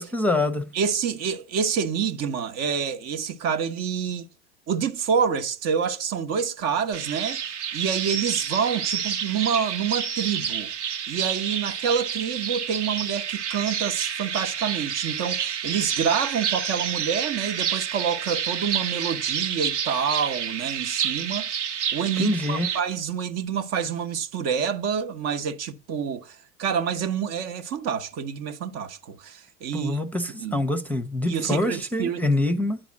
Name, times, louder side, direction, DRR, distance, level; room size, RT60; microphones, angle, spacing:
voice 1, 0.0-0.7 22.2-22.7 29.7-32.8, left 1 dB, 5° left, 0.8 m, -25 dB
voice 2, 0.7-4.3 4.7-7.4 7.7-10.7 11.1-21.5 21.9-30.0 30.4-30.6 31.3-32.2, right 7 dB, 45° right, 1.0 m, -27 dB
sound 1, 6.9-22.8, right 8 dB, 75° right, 1.3 m, -29 dB
8.9 x 5.0 x 7.2 m
hypercardioid pair, 90°, 35 cm